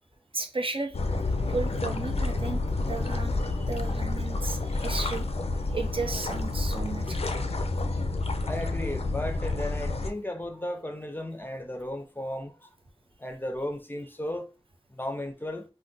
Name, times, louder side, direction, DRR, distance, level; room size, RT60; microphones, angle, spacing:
voice 1, 0.3-1.0 1.5-5.3 5.7-7.4, right 3 dB, 60° right, 0.4 m, -34 dB
sound 1, 0.9-10.1, left 2 dB, 75° left, 0.4 m, -29 dB
voice 2, 8.5-12.5 13.2-14.5 15.0-15.6, left 1 dB, 20° left, 0.5 m, -34 dB
2.4 x 2.2 x 3.7 m
wide cardioid pair, 45°, 11 cm